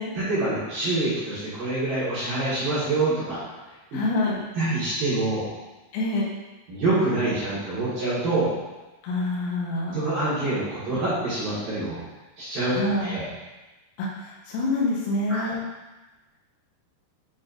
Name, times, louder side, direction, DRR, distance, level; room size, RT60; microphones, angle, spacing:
voice 1, 0.2-3.4 4.5-5.5 6.7-8.5 9.9-12.0 12.4-13.3 15.3-15.5, right 2 dB, 55° right, -11 dB, 2.7 m, -26 dB
voice 2, 3.9-4.4 5.9-6.3 9.0-10.0 12.7-13.1 14.0-15.6, left 2 dB, 90° left, -4 dB, 3.9 m, -26 dB
9.4 x 4.3 x 2.6 m, 1.1 s
omnidirectional pair, 5.9 m